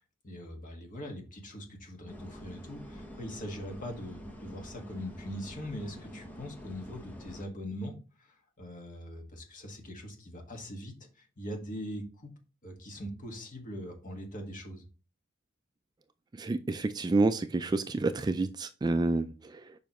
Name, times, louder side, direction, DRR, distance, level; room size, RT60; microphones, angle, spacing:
voice 1, 0.0-12.3 12.6-14.9, equal, 40° left, 2 dB, 1.6 m, -42 dB
sound 1, 2.1-7.4, equal, 10° left, 1.1 m, -47 dB
voice 2, 16.4-19.7, right 3 dB, 20° right, 10 dB, 0.3 m, -29 dB
6.9 x 5.1 x 3.0 m, 0.33 s
head